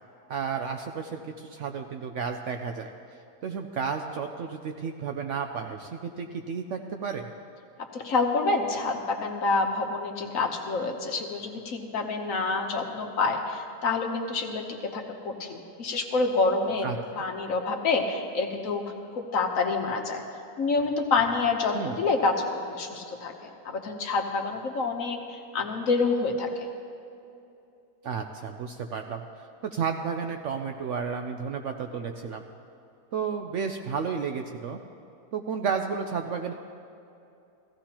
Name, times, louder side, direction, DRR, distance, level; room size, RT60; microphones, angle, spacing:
voice 1, 0.3-2.9 3.4-7.3 16.8-17.2 21.7-22.0 28.0-29.2 29.6-32.4 33.1-34.8 35.3-36.5, right 6 dB, 65° right, 5 dB, 0.7 m, -32 dB
voice 2, 7.9-16.9 17.2-18.8 19.2-20.2 20.6-26.5, left 3 dB, 60° left, 3 dB, 1.3 m, -27 dB
16.5 x 14.5 x 2.9 m, 2.6 s
omnidirectional pair, 1.7 m